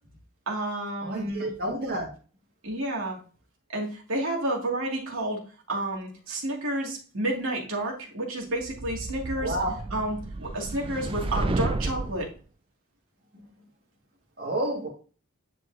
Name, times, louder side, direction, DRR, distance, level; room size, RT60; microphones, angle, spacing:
voice 1, 0.5-1.5 2.6-3.2 3.7-9.6 9.9-12.3, right 1 dB, 80° right, -1 dB, 2.4 m, -30 dB
voice 2, 1.0-2.1 9.4-9.8 14.4-14.9, right 1 dB, 50° right, -3 dB, 2.1 m, -29 dB
sound 1, 8.6-12.3, right 3 dB, 25° right, 0.3 m, -32 dB
10.0 x 4.6 x 2.8 m, 0.37 s
head